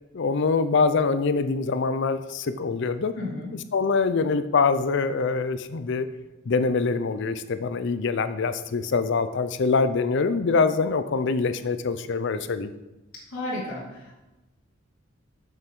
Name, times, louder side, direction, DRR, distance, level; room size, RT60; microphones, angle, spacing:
voice 1, 0.1-3.1 3.7-6.1 6.5-12.7, left 4 dB, 60° left, 11 dB, 0.5 m, -24 dB
voice 2, 3.1-3.5 13.1-14.2, left 2 dB, 80° left, -6 dB, 2.7 m, -33 dB
7.6 x 5.8 x 5.4 m, 1.0 s
head